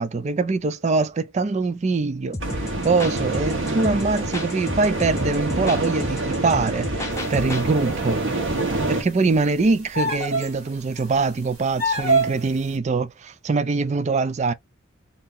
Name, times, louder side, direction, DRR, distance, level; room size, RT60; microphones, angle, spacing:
voice 1, 0.0-6.9 7.3-8.2 8.9-14.5, right 3 dB, 30° right, 0.3 m, -23 dB
sound 1, 2.3-7.7, left 2 dB, 15° left, 0.6 m, -33 dB
sound 2, 2.4-9.0, right 2 dB, 60° right, 1.2 m, -27 dB
sound 3, 7.5-7.9 9.9-10.5 11.0-11.1 11.8-12.5, right 2 dB, 85° right, 1.7 m, -23 dB
2.8 x 2.7 x 3.6 m
head